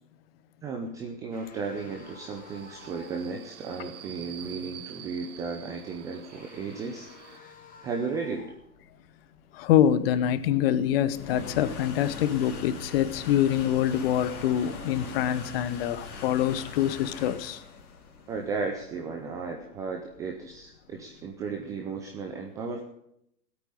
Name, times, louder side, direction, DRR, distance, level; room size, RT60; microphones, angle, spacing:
voice 1, 0.6-8.5 18.3-22.8, right 4 dB, 5° right, 2 dB, 0.5 m, -35 dB
sound 1, 1.3-3.4 6.0-8.8, left 3 dB, 15° left, 2.4 m, -52 dB
Subway metro underground, 1.8-7.4, right 10 dB, 45° right, 1.3 m, -48 dB
sound 2, 8.5-21.5, left 5 dB, 60° left, 3.2 m, -42 dB
voice 2, 9.5-17.6, left 10 dB, 35° left, 15 dB, 1.0 m, -25 dB
16.0 x 8.6 x 9.2 m, 0.77 s
hypercardioid pair, 125°, 49 cm